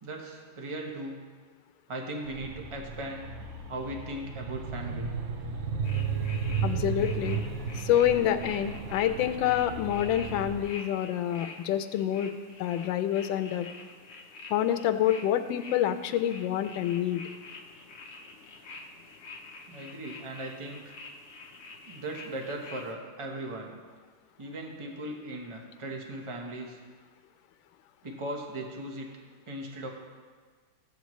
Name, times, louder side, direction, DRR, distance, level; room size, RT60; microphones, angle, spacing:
voice 1, 0.0-1.2 1.9-3.3 3.7-5.1 19.7-21.0 21.9-23.7 24.4-26.8 28.0-29.1 29.5-29.9, right 1 dB, 25° right, 0 dB, 0.7 m, -38 dB
sound 1, 2.2-10.6, right 5 dB, 65° right, 0.7 m, -34 dB
sound 2, 5.8-22.9, left 3 dB, 55° left, 0.7 m, -47 dB
voice 2, 6.6-7.4 7.7-12.3 12.6-13.7 14.5-17.2, left 11 dB, 85° left, 10 dB, 1.3 m, -27 dB
13.5 x 7.4 x 3.1 m, 1.5 s
omnidirectional pair, 2.0 m